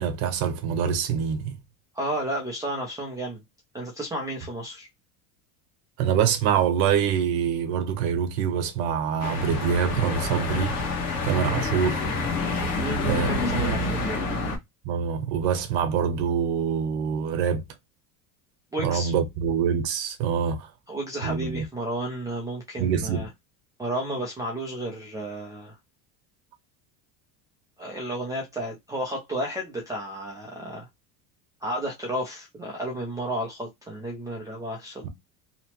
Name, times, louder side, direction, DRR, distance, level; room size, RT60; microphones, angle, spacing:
voice 1, 0.0-1.5 6.0-10.8 11.2-12.0 13.0-13.8 14.8-17.6 18.8-20.7 21.2-21.6 22.8-23.2 35.0-35.1, right 7 dB, 70° right, 0.9 m, -25 dB
voice 2, 1.9-3.4 3.7-4.9 12.8-14.2 18.7-19.1 20.9-23.3 23.8-25.8 27.8-30.9 31.6-35.0, right 1 dB, 10° right, 0.3 m, -32 dB
sound 1, 9.2-14.6, left 3 dB, 40° left, 1.1 m, -28 dB
2.9 x 2.1 x 2.9 m
cardioid pair, 155°, 41 cm